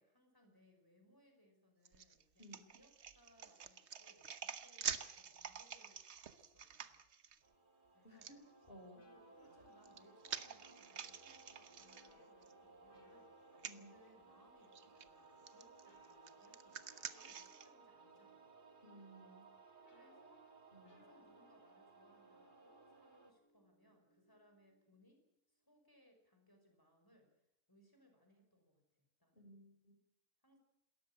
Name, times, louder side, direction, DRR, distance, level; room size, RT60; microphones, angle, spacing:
voice 1, 0.0-7.0 7.9-8.3 9.1-18.5 19.9-20.5 20.9-27.3 27.7-29.5 30.4-30.6, equal, 15° left, 4 dB, 5.3 m, -70 dB
sound 1, 1.8-7.4 8.2-8.3 9.5-12.5 12.9-13.0 13.5-13.8 14.7-15.0 15.5-17.7, right 7 dB, 50° right, 1.2 m, -48 dB
sound 2, 7.4-23.3, right 3 dB, 35° right, 2.1 m, -62 dB
voice 2, 8.0-8.4 8.7-9.1 13.6-13.9 18.8-19.6 20.7-21.0 29.3-29.9, equal, 35° left, 4 dB, 4.7 m, -58 dB
sound 3, 8.9-25.1, equal, 75° left, 4.1 m, -71 dB
27.5 x 14.0 x 8.7 m, 0.78 s
omnidirectional pair, 1.6 m